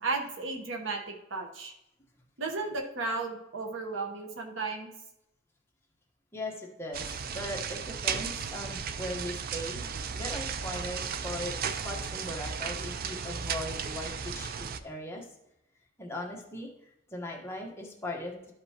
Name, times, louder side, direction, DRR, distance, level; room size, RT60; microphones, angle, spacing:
voice 1, 0.0-1.7 2.4-4.9, right 3 dB, 70° right, 3 dB, 1.1 m, -34 dB
voice 2, 6.3-9.9 10.1-15.3 16.0-16.7 17.1-18.3, left 1 dB, 15° left, -1 dB, 1.2 m, -39 dB
sound 1, 6.9-14.8, right 6 dB, 50° right, 0.4 m, -35 dB
13.0 x 5.3 x 2.9 m, 0.84 s
head